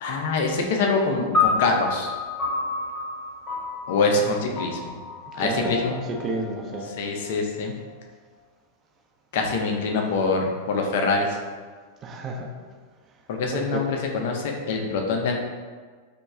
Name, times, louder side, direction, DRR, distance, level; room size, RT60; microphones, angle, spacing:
voice 1, 0.0-2.1 3.9-4.9 5.3-5.9 7.0-7.7 9.3-11.4 13.3-15.4, left 3 dB, 55° left, 2 dB, 0.4 m, -24 dB
sound 1, 1.3-7.8, left 4 dB, 20° left, 1.0 m, -29 dB
voice 2, 5.4-6.9 12.0-12.5 13.5-13.9, right 2 dB, 30° right, 1 dB, 0.5 m, -31 dB
3.0 x 2.2 x 3.5 m, 1.5 s
figure-of-eight pair, 90°, 0 cm